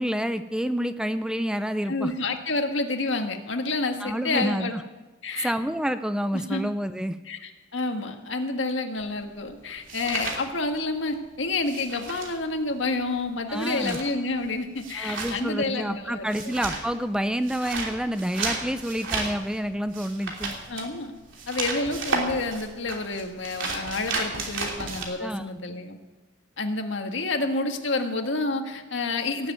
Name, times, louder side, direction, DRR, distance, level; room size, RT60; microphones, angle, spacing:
voice 1, 0.0-2.1 4.0-4.8 5.4-7.2 13.5-14.0 15.0-20.5 25.0-25.5, equal, 5° right, 11 dB, 0.4 m, -28 dB
voice 2, 1.9-4.8 5.2-5.5 6.3-6.6 7.3-16.5 20.7-21.1 21.5-26.0 26.6-29.5, left 3 dB, 80° left, 5 dB, 1.6 m, -29 dB
sound 1, 9.0-11.1 11.4-25.1, right 3 dB, 85° right, 3.1 m, -33 dB
17.5 x 7.9 x 9.1 m, 1.2 s
head